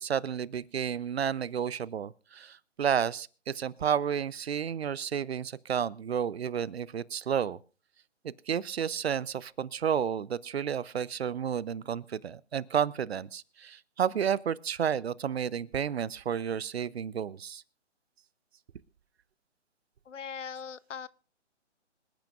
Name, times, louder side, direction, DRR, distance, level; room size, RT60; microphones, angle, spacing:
voice 1, 0.0-7.6 8.5-17.6, right 8 dB, 60° right, 22 dB, 0.6 m, -31 dB
voice 2, 20.1-21.1, left 7 dB, 75° left, 19 dB, 0.8 m, -40 dB
26.0 x 9.2 x 2.4 m, 0.35 s
figure-of-eight pair, 150°, 37 cm